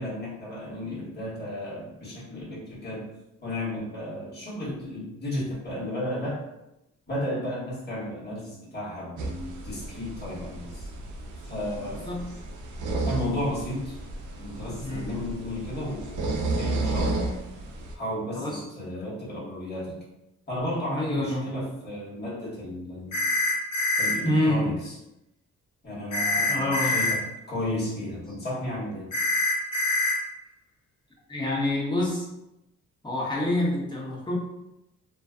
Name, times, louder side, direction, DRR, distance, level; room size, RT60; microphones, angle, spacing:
voice 1, 0.0-3.1 3.4-6.5 7.1-10.9 11.4-12.1 13.1-14.0 14.4-17.4 17.9-20.0 20.5-23.2 24.0-24.9 25.8-29.1, left 1 dB, 35° left, -7 dB, 1.1 m, -33 dB
sound 1, 9.2-17.9, right 2 dB, 70° right, 0.5 m, -32 dB
voice 2, 20.9-21.5 24.2-24.6 26.5-26.9 31.3-32.3 33.0-34.4, left 1 dB, 15° left, -4 dB, 0.8 m, -27 dB
sound 2, 23.1-24.1 26.1-27.1 29.1-30.1, left 2 dB, 70° left, 0.8 m, -25 dB
2.4 x 2.2 x 2.4 m, 0.89 s
cardioid pair, 90°, 31 cm